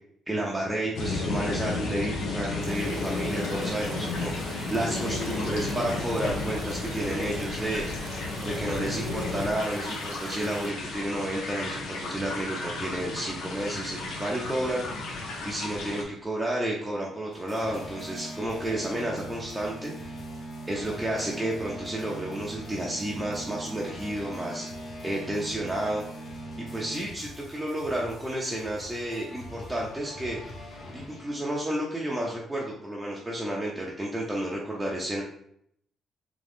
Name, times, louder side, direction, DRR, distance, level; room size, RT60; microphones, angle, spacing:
voice 1, 0.3-4.3 4.7-7.9 8.5-14.8 15.4-20.2 20.7-24.7 25.0-26.0 26.6-30.5 30.9-35.2, right 1 dB, 10° right, -4 dB, 0.7 m, -31 dB
sound 1, 0.9-16.0, left 3 dB, 85° left, 0.9 m, -33 dB
sound 2, 2.6-10.7, right 4 dB, 35° right, 0.3 m, -44 dB
sound 3, 17.3-31.7, right 1 dB, 50° left, 1.1 m, -41 dB
3.7 x 3.1 x 3.6 m, 0.69 s
cardioid pair, 90°, 0 cm